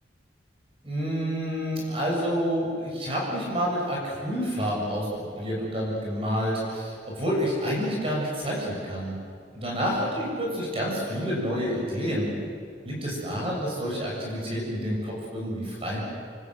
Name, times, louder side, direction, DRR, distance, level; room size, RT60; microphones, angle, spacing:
voice 1, 0.8-9.1 9.5-12.3 12.9-16.0, equal, 30° right, -3 dB, 7.3 m, -28 dB
29.0 x 25.0 x 8.1 m, 2.3 s
head